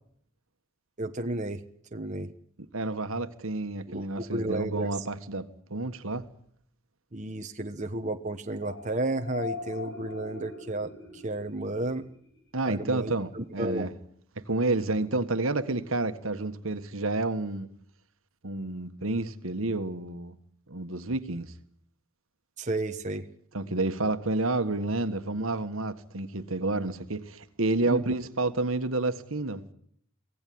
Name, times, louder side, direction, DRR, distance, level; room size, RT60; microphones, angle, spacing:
voice 1, 1.0-1.6 1.9-2.3 3.9-4.9 7.1-12.1 12.7-13.9 22.6-23.2 27.9-28.0, right 2 dB, 35° right, 1.1 m, -32 dB
voice 2, 2.7-6.3 12.5-13.9 14.5-17.7 18.4-20.3 20.7-21.5 23.5-29.7, right 2 dB, 70° right, 1.6 m, -30 dB
sound 1, 8.6-12.4, left 4 dB, 60° left, 6.0 m, -41 dB
24.5 x 17.0 x 9.4 m
head